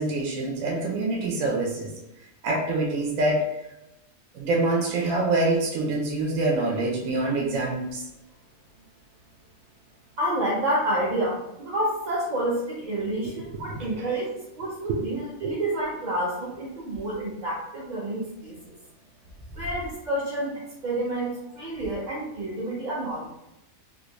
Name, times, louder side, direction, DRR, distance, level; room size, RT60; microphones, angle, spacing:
voice 1, 0.0-1.9 2.4-3.5 4.3-8.1 13.3-14.0 15.4-15.5, right 2 dB, 75° right, -1 dB, 1.0 m, -26 dB
voice 2, 10.2-18.7 19.5-23.3, right 1 dB, 45° right, -7 dB, 0.6 m, -29 dB
3.4 x 2.5 x 2.9 m, 0.91 s
omnidirectional pair, 1.4 m